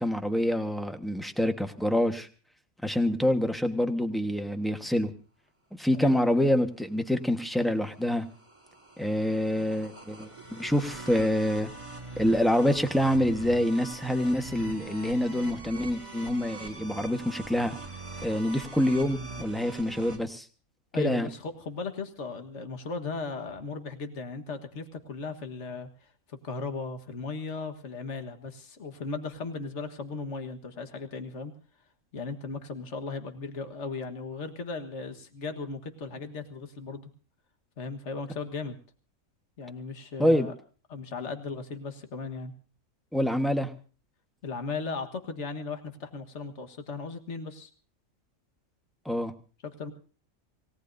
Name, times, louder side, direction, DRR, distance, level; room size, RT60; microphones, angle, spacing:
voice 1, 0.0-2.3 2.8-5.1 5.7-8.3 9.0-11.7 12.2-17.7 18.2-20.4 20.9-21.3 40.2-40.5 43.1-43.7 49.0-49.3, equal, ahead, 7 dB, 1.2 m, -26 dB
sound 1, 7.1-20.2, right 3 dB, 20° right, 4.4 m, -43 dB
voice 2, 20.9-25.9 26.4-31.5 32.1-37.1 37.8-38.8 39.6-40.5 40.9-42.5 44.4-47.7 49.8-49.9, left 4 dB, 55° left, 7 dB, 1.8 m, -36 dB
27.5 x 17.5 x 2.7 m, 0.38 s
omnidirectional pair, 1.4 m